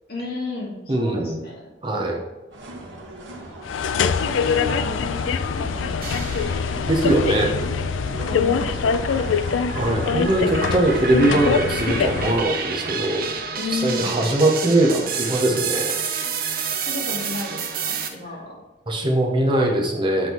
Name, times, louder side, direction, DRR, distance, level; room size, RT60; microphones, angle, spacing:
voice 1, 0.1-1.7 3.9-6.4 8.2-9.3 13.5-14.3 16.9-18.6, left 2 dB, 55° left, -5 dB, 2.5 m, -33 dB
voice 2, 0.9-1.4 1.8-2.2 6.9-7.5 9.7-13.3 13.7-16.0 18.9-20.3, right 1 dB, 25° right, 0 dB, 1.1 m, -21 dB
sound 1, 2.5-14.3, right 1 dB, 70° right, 1.4 m, -40 dB
sound 2, 3.6-12.5, left 6 dB, 85° left, 0.4 m, -24 dB
sound 3, 6.0-6.9 7.4-18.1, right 5 dB, 50° right, 0.7 m, -30 dB
8.2 x 3.8 x 4.6 m, 1.1 s
head